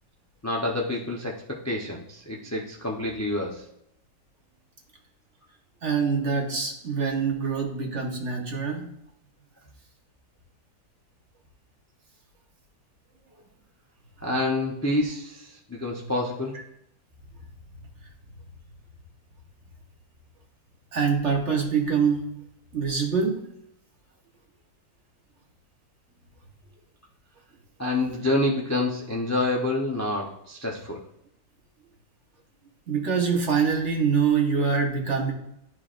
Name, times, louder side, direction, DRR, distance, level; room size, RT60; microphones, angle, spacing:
voice 1, 0.4-3.6 14.2-16.6 27.8-31.0, left 2 dB, 25° left, -2 dB, 0.3 m, -28 dB
voice 2, 5.8-8.8 20.9-22.2 22.7-23.4 32.9-35.3, right 5 dB, 45° right, 0 dB, 1.3 m, -24 dB
12.0 x 4.7 x 2.5 m, 0.78 s
omnidirectional pair, 1.8 m